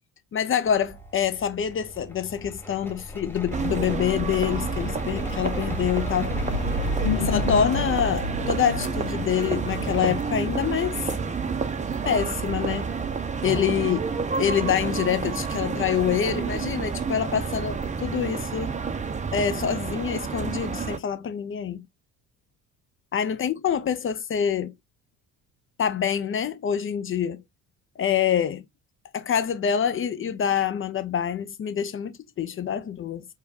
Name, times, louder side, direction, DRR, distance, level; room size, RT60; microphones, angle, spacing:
voice 1, 0.3-6.3 7.2-11.0 12.1-12.9 13.4-14.0 14.4-18.8 19.3-21.8 23.1-24.7 25.8-27.4 28.0-28.6 29.1-33.3, left 8 dB, 30° left, 0.6 m, -26 dB
sound 1, 0.7-7.7, left 1 dB, 5° left, 0.9 m, -35 dB
sound 2, 3.5-21.0, right 5 dB, 15° right, 0.7 m, -29 dB
sound 3, 6.3-11.3, left 4 dB, 85° left, 0.7 m, -31 dB
4.7 x 2.2 x 2.7 m
figure-of-eight pair, 55°, 45 cm